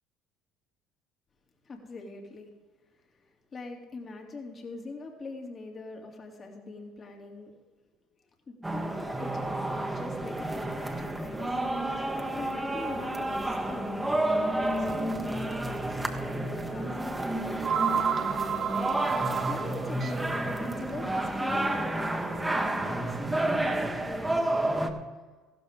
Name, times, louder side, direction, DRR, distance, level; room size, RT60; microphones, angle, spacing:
voice 1, 1.6-2.5 3.1-7.6 8.5-11.6 12.0-16.0 16.3-17.0 17.3-18.1 19.1-25.0, left 3 dB, 40° left, 2 dB, 2.8 m, -42 dB
sound 1, 8.6-24.9, right 1 dB, 10° right, 1.6 m, -30 dB
sound 2, 15.3-15.5 15.8-15.9 17.1-17.2 17.4-22.7, right 7 dB, 40° right, 0.8 m, -32 dB
15.5 x 12.5 x 3.7 m, 1.3 s
hypercardioid pair, 65°, 0 cm